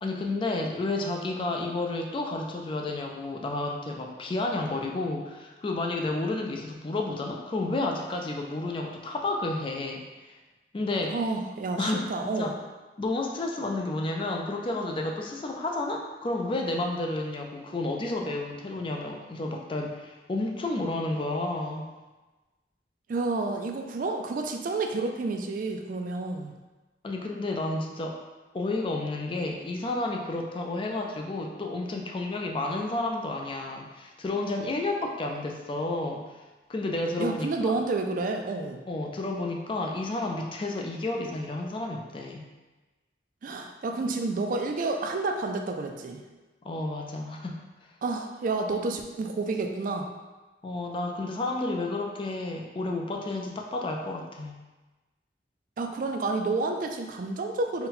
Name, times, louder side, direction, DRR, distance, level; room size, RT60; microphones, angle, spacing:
voice 1, 0.0-10.4 10.7-11.2 11.8-12.6 13.0-21.8 27.0-28.2 28.5-36.4 36.7-37.7 38.9-42.4 46.6-47.6 50.6-54.6, left 2 dB, 30° left, 1 dB, 0.4 m, -31 dB
voice 2, 11.1-12.6 23.1-26.5 37.2-38.8 43.4-46.2 48.0-50.1 55.8-57.9, right 3 dB, 50° right, 4 dB, 0.3 m, -30 dB
3.9 x 2.2 x 4.1 m, 1.2 s
head